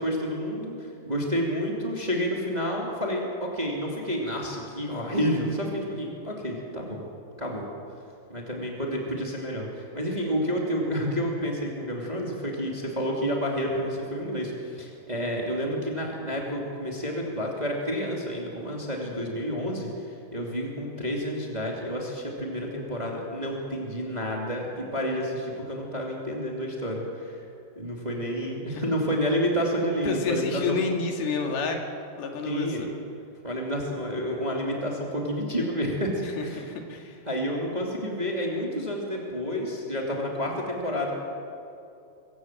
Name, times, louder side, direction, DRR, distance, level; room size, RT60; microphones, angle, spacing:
voice 1, 0.0-7.0 7.4-7.6 8.3-27.4 27.8-30.8 32.5-32.8 33.4-36.7 37.3-41.1, equal, 10° right, -1 dB, 2.3 m, -29 dB
voice 2, 30.1-31.8 32.2-32.9 36.4-37.1, left 4 dB, 70° left, 3 dB, 3.9 m, -29 dB
24.0 x 16.0 x 7.7 m, 2.6 s
omnidirectional pair, 4.6 m